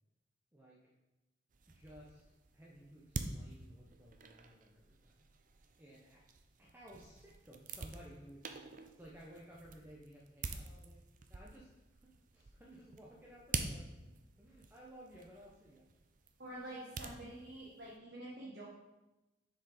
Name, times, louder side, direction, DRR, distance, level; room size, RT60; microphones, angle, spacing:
sound 1, 1.5-18.0, right 4 dB, 45° right, 0.5 m, -47 dB
voice 1, 1.7-5.3 5.8-6.3 6.6-8.7 9.0-11.0 11.3-12.0 12.3-14.1 14.4-15.8, equal, 10° right, -5 dB, 0.8 m, -57 dB
voice 2, 16.4-18.6, right 1 dB, 65° right, -6 dB, 1.4 m, -47 dB
7.0 x 4.8 x 4.9 m, 1.0 s
head